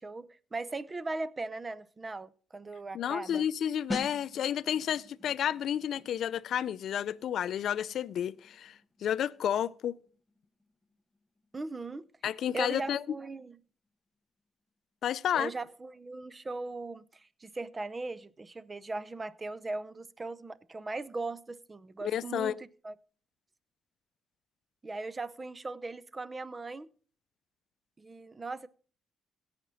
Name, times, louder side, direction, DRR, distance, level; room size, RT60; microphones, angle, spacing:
voice 1, 0.0-3.4 11.5-12.1 12.5-13.6 15.3-22.9 24.8-26.9 28.0-28.7, right 3 dB, 25° right, 0.6 m, -39 dB
voice 2, 2.9-9.9 12.2-13.0 15.0-15.5 22.0-22.6, left 9 dB, 70° left, 0.5 m, -31 dB
sound 1, 3.9-14.4 14.7-14.9, left 2 dB, 5° right, 1.5 m, -47 dB
17.0 x 5.9 x 4.1 m
cardioid pair, 90°, 0 cm